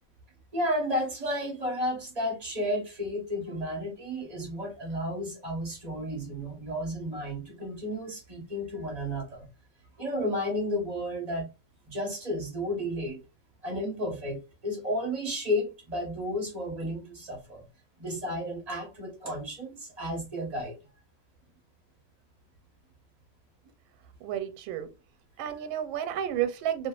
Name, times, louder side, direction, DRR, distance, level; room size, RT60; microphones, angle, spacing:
voice 1, 0.5-9.5 10.0-11.5 11.8-13.2 13.6-17.6 18.0-20.8, equal, 40° right, 0.6 m, -32 dB
voice 2, 24.2-24.9 25.4-26.9, right 10 dB, 90° right, 1.4 m, -31 dB
2.9 x 2.7 x 2.3 m
omnidirectional pair, 2.1 m